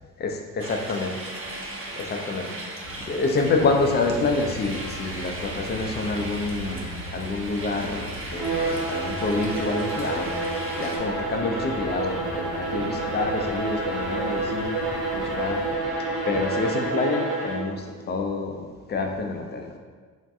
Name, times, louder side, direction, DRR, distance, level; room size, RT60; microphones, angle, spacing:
voice 1, 0.2-1.3 2.0-2.5 3.0-10.3 10.8-14.8 15.1-15.7 16.3-19.7, left 3 dB, 25° left, 3 dB, 0.3 m, -27 dB
sound 1, 0.6-11.0, right 1 dB, 30° right, 0.6 m, -37 dB
sound 2, 2.8-15.7, right 2 dB, 90° right, 0.6 m, -40 dB
Bowed string instrument, 8.3-17.8, right 3 dB, 55° right, 1.0 m, -29 dB
2.6 x 2.2 x 3.5 m, 1.5 s
hypercardioid pair, 55°, 46 cm